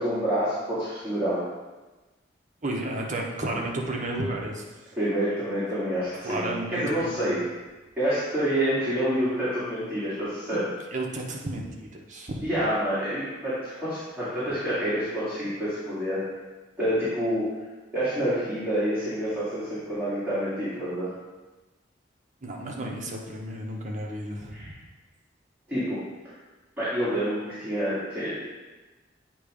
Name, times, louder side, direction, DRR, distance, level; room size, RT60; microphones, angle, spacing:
voice 1, 0.0-1.4 5.0-7.4 8.0-10.6 12.4-16.2 16.8-17.4 17.9-21.1 24.5-24.7 25.7-26.0 26.8-28.5, equal, 10° right, -13 dB, 2.1 m, -27 dB
voice 2, 2.6-4.6 6.2-7.3 10.5-10.6 10.9-12.6 22.4-24.6, right 1 dB, 45° right, 0 dB, 1.0 m, -32 dB
8.6 x 3.1 x 5.0 m, 1.2 s
head